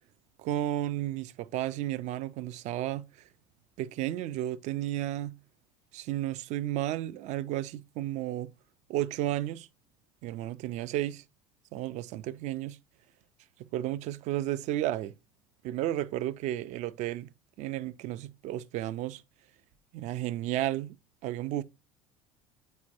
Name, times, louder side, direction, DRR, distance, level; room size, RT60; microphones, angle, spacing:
voice 1, 0.4-3.3 3.8-5.4 5.9-8.5 8.9-9.7 10.2-11.2 11.7-12.8 13.7-15.1 15.6-17.3 17.6-19.2 19.9-21.0 21.2-21.6, right 13 dB, 45° right, 0.4 m, -33 dB
9.5 x 4.4 x 2.8 m
figure-of-eight pair, 70°, 17 cm